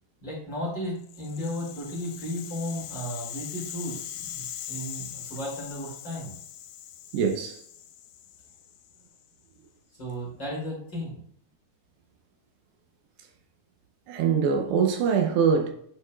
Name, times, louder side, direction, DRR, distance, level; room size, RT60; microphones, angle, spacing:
voice 1, 0.2-6.3 10.0-11.2, equal, 30° left, 2.4 m, -34 dB
Rattle (instrument), 1.0-9.2, left 11 dB, 85° left, 2.2 m, -41 dB
voice 2, 7.1-7.6 14.1-15.7, right 6 dB, 80° right, 2.8 m, -23 dB
9.7 x 5.2 x 2.3 m
omnidirectional pair, 5.0 m